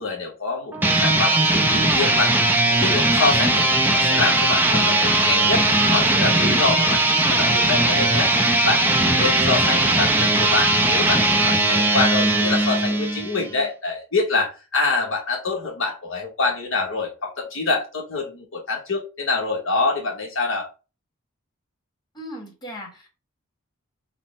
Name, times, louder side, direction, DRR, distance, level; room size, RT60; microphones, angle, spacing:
voice 1, 0.0-20.7, left 3 dB, 60° left, 1.0 m, -26 dB
sound 1, 0.7-13.5, right 2 dB, 10° right, 0.4 m, -19 dB
voice 2, 8.2-9.2 22.1-23.1, left 1 dB, 20° left, 1.5 m, -38 dB
5.8 x 2.1 x 4.1 m
head